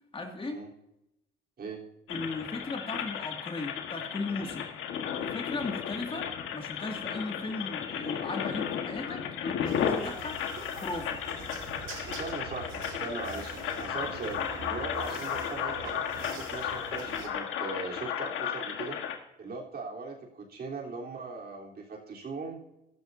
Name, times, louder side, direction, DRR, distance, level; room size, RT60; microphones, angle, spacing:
voice 1, 0.1-0.6 2.1-4.7 5.2-10.4 10.8-11.2, left 3 dB, 25° left, 2 dB, 2.2 m, -37 dB
sound 1, 2.1-19.2, left 8 dB, 85° left, 1.5 m, -34 dB
sound 2, 9.7-17.3, right 5 dB, 85° right, 1.9 m, -44 dB
voice 2, 12.0-19.0 19.4-22.6, right 3 dB, 50° right, -2 dB, 3.6 m, -40 dB
15.0 x 12.5 x 2.7 m, 0.85 s
cardioid pair, 90°, 20 cm